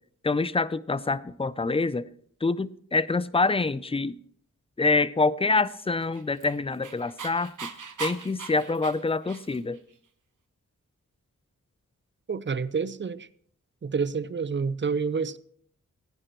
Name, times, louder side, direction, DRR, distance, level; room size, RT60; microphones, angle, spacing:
voice 1, 0.2-2.1 2.4-4.2 4.8-7.7 8.0-9.8, left 3 dB, 20° left, 0.4 m, -26 dB
Dog, 6.0-9.8, right 6 dB, 75° right, 1.2 m, -39 dB
voice 2, 12.3-13.3 13.8-15.4, right 5 dB, 35° right, 0.5 m, -28 dB
18.5 x 10.0 x 3.0 m
wide cardioid pair, 80°, 31 cm